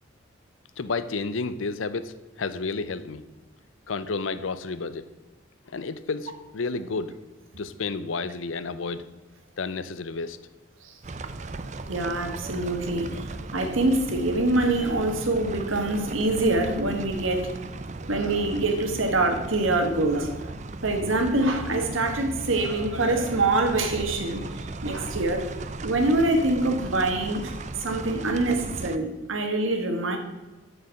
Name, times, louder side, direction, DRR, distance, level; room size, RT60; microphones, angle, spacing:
voice 1, 0.8-3.2 3.9-5.0 5.7-7.2 7.6-9.1 9.6-10.4, left 4 dB, 80° left, 14 dB, 0.6 m, -31 dB
sound 1, 11.0-29.0, right 2 dB, 35° right, 0.5 m, -37 dB
voice 2, 11.8-13.2 13.5-17.5 18.0-20.5 20.8-25.4 25.8-30.2, right 2 dB, 85° right, 5 dB, 1.6 m, -25 dB
6.8 x 6.7 x 7.7 m, 1.1 s
head